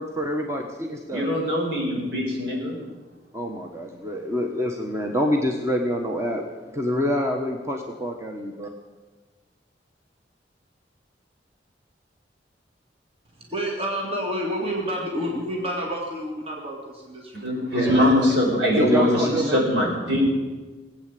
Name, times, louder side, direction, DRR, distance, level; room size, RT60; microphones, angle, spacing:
voice 1, 0.0-1.3 3.3-6.5 6.7-8.7 17.7-18.1 18.7-19.9, equal, 15° right, 2 dB, 1.2 m, -26 dB
voice 2, 1.1-2.8 17.3-20.3, left 1 dB, 65° right, -1 dB, 4.9 m, -22 dB
voice 3, 13.4-18.2 18.9-19.4, equal, 35° right, -1 dB, 2.3 m, -30 dB
18.5 x 8.7 x 8.4 m, 1.3 s
head